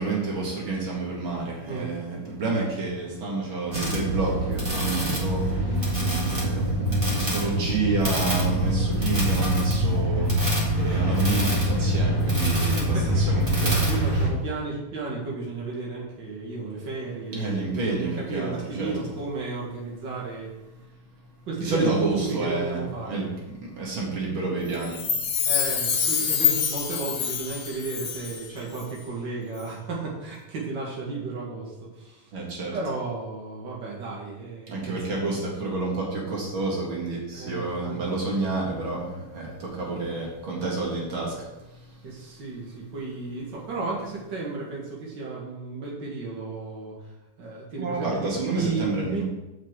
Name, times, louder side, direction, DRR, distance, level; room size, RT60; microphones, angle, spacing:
voice 1, 0.0-13.9 17.3-18.9 21.6-22.8 23.1-25.1 32.3-32.8 34.7-42.0 47.8-49.2, right 3 dB, 85° right, -2 dB, 2.7 m, -29 dB
sound 1, 3.7-14.3, equal, 25° right, 2.0 m, -24 dB
voice 2, 12.5-13.2 13.8-20.5 21.5-23.3 25.4-32.3 32.7-35.3 37.3-38.7 42.0-49.2, right 3 dB, 65° right, -4 dB, 2.6 m, -33 dB
Chime, 24.8-28.5 28.7-28.8, left 8 dB, 70° left, 1.7 m, -26 dB
6.6 x 5.8 x 7.4 m, 1.0 s
omnidirectional pair, 2.2 m